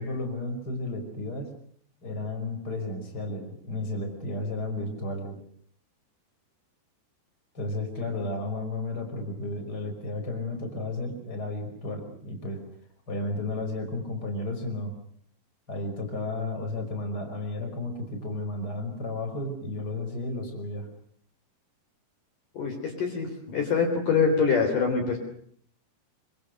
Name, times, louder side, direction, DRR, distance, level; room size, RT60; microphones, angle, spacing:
voice 1, 0.0-1.5 2.0-5.4 7.5-12.6 13.1-14.9 15.7-20.9, left 2 dB, 20° left, 5 dB, 5.7 m, -33 dB
voice 2, 22.6-25.2, left 5 dB, 50° left, 3 dB, 5.2 m, -25 dB
26.0 x 26.0 x 6.7 m, 0.62 s
omnidirectional pair, 5.0 m